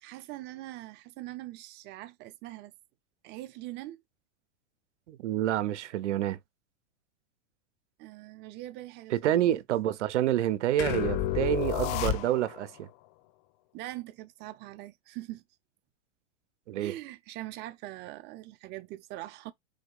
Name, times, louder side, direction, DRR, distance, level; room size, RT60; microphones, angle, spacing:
voice 1, 0.0-2.7 3.2-4.0 8.0-9.6 13.7-15.4 16.8-19.5, right 16 dB, 30° right, 0.7 m, -42 dB
voice 2, 5.1-6.4 9.1-12.9 16.7-16.9, right 12 dB, 85° right, 0.7 m, -28 dB
sound 1, 10.8-12.7, left 12 dB, 40° left, 0.7 m, -30 dB
5.0 x 4.3 x 2.4 m
supercardioid pair, 140°, 34 cm